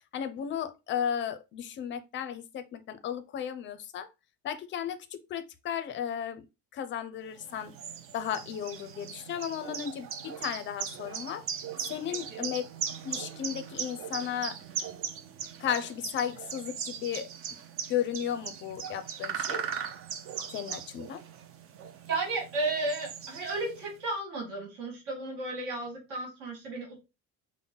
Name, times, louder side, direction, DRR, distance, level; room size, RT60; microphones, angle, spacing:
voice 1, 0.1-4.1 4.4-6.4 6.7-7.7 8.1-11.4 11.9-12.6 13.0-14.6 15.6-17.3 17.9-19.7 20.5-21.2, left 9 dB, 35° left, 0.5 m, -34 dB
sound 1, 7.4-23.9, right 7 dB, 45° right, 0.5 m, -39 dB
voice 2, 22.1-27.0, right 2 dB, 65° right, 1.9 m, -33 dB
5.3 x 2.1 x 3.7 m
cardioid pair, 175°, 32 cm